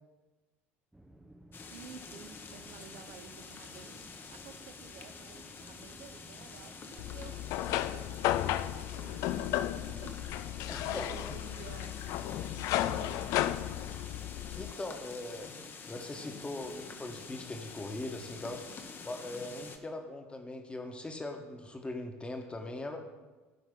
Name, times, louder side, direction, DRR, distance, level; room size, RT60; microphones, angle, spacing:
sound 1, 0.9-11.2, right 1 dB, 5° right, 0.7 m, -56 dB
sound 2, 1.5-19.8, left 4 dB, 30° left, 1.0 m, -48 dB
voice 1, 1.7-10.2 10.8-12.0 12.8-13.6, right 7 dB, 55° right, 9 dB, 0.8 m, -52 dB
sound 3, 7.0-14.7, left 13 dB, 50° left, 0.4 m, -34 dB
voice 2, 10.6-11.3 14.6-15.5 15.8-18.6 19.0-23.0, left 2 dB, 15° left, 4 dB, 1.3 m, -40 dB
15.5 x 5.6 x 3.8 m, 1.2 s
figure-of-eight pair, 65°, 7 cm